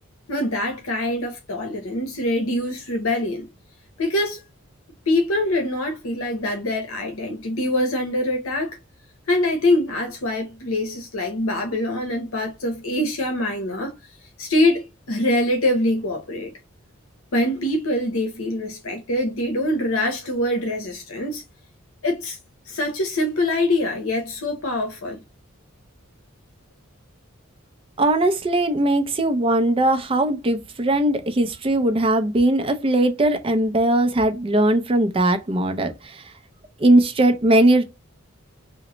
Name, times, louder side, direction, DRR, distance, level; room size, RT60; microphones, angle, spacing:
voice 1, 0.3-3.5 4.0-4.4 5.1-8.8 9.3-13.9 14.4-16.5 17.3-21.4 22.0-22.4 22.7-25.2, left 1 dB, 75° left, 0.8 m, -24 dB
voice 2, 28.0-36.3 36.8-37.8, right 1 dB, 25° right, 0.4 m, -19 dB
3.0 x 2.1 x 3.8 m
head